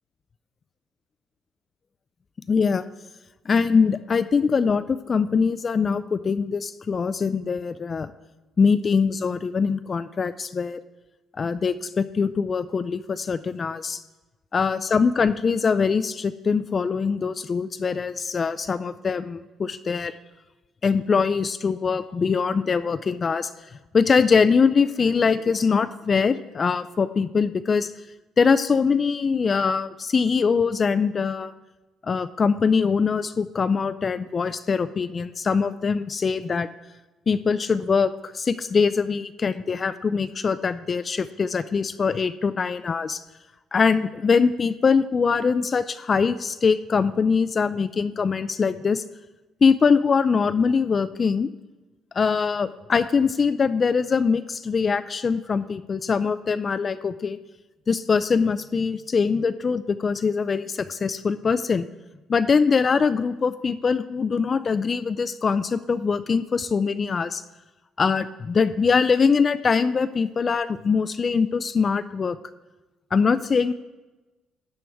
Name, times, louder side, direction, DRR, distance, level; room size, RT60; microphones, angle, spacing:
voice 1, 2.5-2.8 3.5-8.1 8.6-10.8 11.4-14.0 14.5-20.1 20.8-23.5 23.9-27.9 28.4-31.5 32.0-36.7 37.3-43.2 43.7-49.0 49.6-51.5 52.2-57.4 57.9-61.9 62.3-67.4 68.0-72.4 73.1-73.7, left 5 dB, 30° left, 12 dB, 0.3 m, -22 dB
13.0 x 9.0 x 3.5 m, 1.1 s
cardioid pair, 120°, 0 cm